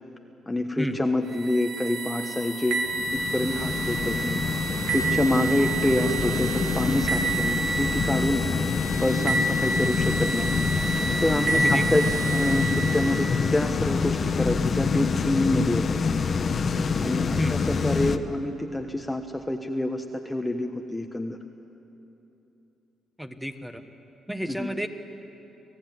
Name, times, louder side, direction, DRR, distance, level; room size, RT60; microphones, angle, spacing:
voice 1, 0.5-2.8 3.1-4.4 4.9-8.4 9.0-10.5 11.2-16.2 17.0-21.4 24.5-24.7, left 1 dB, 10° left, 4 dB, 1.2 m, -27 dB
sound 1, 1.3-13.4, right 3 dB, 75° right, 2.8 m, -29 dB
sound 2, 2.9-18.2, left 5 dB, 45° left, 1.1 m, -26 dB
voice 2, 11.5-11.9 17.4-17.6 23.2-23.8 24.3-24.9, equal, 5° right, 7 dB, 1.6 m, -31 dB
26.5 x 17.0 x 9.7 m, 3.0 s
cardioid pair, 90°, 0 cm